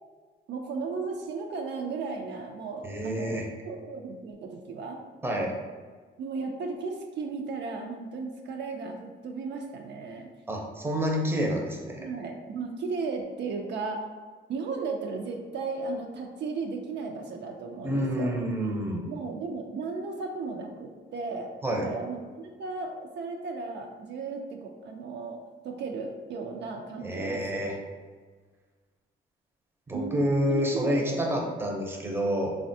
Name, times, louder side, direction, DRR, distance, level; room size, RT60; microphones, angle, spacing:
voice 1, 0.5-5.0 6.2-10.3 12.0-14.0 14.5-18.3 19.1-25.4 25.6-27.6 29.9-31.4, right 4 dB, 60° right, 3 dB, 0.4 m, -35 dB
voice 2, 2.8-3.5 5.2-5.5 10.5-12.1 17.8-19.1 21.6-21.9 27.0-27.7 29.9-32.6, equal, 10° right, -1 dB, 0.5 m, -28 dB
3.3 x 2.2 x 2.6 m, 1.5 s
cardioid pair, 90°, 20 cm